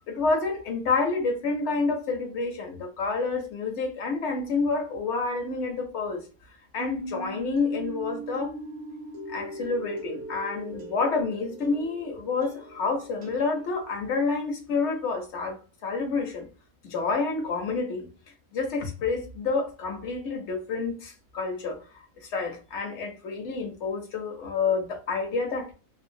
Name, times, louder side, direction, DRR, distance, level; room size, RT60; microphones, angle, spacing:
voice 1, 0.1-6.2 6.7-8.5 9.3-16.5 16.9-18.1 18.5-21.8 22.3-25.7, left 4 dB, 60° left, 1.0 m, -28 dB
sound 1, 6.8-14.1, right 2 dB, 50° right, 0.5 m, -40 dB
2.8 x 2.1 x 2.6 m
omnidirectional pair, 1.4 m